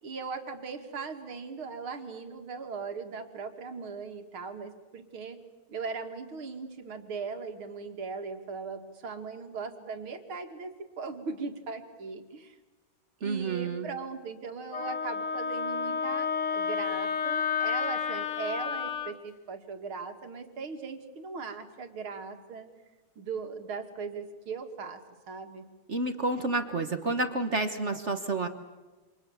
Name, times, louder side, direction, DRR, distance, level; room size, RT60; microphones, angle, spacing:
voice 1, 0.0-5.4 5.7-12.6 13.2-22.7 23.2-25.0 25.3-25.7, right 4 dB, 70° right, 6 dB, 2.9 m, -39 dB
voice 2, 13.2-13.9 25.9-28.5, right 3 dB, 35° right, 8 dB, 1.4 m, -29 dB
Wind instrument woodwind instrument, 14.7-19.1, left 6 dB, 80° left, 2.2 m, -31 dB
29.0 x 26.5 x 7.2 m, 1.2 s
omnidirectional pair, 2.4 m